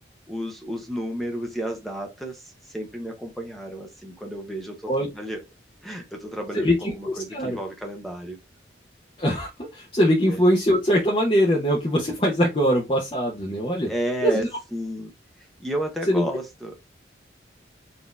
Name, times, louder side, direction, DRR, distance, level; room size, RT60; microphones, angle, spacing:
voice 1, 0.3-5.4 5.8-8.4 10.3-10.4 13.9-14.4 14.7-15.1 15.4-16.7, right 1 dB, ahead, 0.9 m, -32 dB
voice 2, 6.5-7.6 9.2-13.9 14.2-14.5 16.1-16.2, equal, 30° left, 1.0 m, -22 dB
4.3 x 2.9 x 3.4 m
head